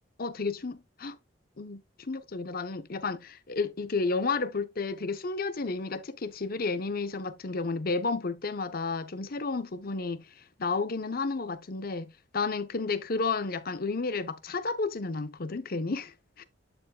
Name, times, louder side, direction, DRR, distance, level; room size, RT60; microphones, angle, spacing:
voice 1, 0.2-1.2 1.6-16.4, left 4 dB, 55° left, 0.8 m, -32 dB
12.0 x 4.8 x 2.3 m
head